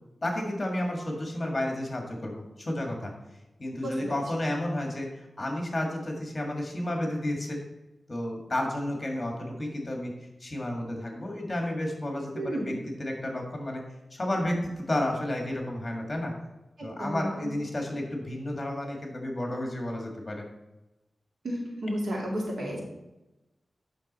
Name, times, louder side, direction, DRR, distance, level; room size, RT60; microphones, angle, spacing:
voice 1, 0.2-3.1 3.6-7.6 8.1-10.1 10.4-12.7 13.0-13.8 14.1-16.3 16.8-20.4, left 1 dB, 25° left, 1 dB, 1.8 m, -31 dB
voice 2, 3.8-4.2 12.4-12.7 16.8-17.5 21.4-22.8, equal, 85° right, -3 dB, 2.5 m, -32 dB
9.1 x 6.0 x 4.2 m, 1.0 s
wide cardioid pair, 135°, 0 cm